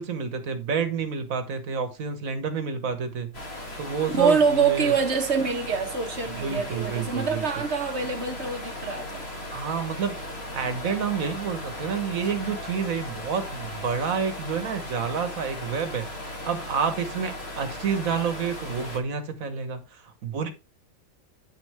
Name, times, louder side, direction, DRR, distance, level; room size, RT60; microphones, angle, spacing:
voice 1, 0.0-3.3 3.8-4.9 6.4-7.5 9.5-10.2 10.5-20.5, right 6 dB, 80° right, 1.7 m, -29 dB
sound 1, 3.3-19.0, left 1 dB, 50° left, 2.4 m, -37 dB
voice 2, 4.1-9.3, right 5 dB, 55° right, 1.5 m, -25 dB
9.7 x 6.4 x 3.4 m
omnidirectional pair, 1.4 m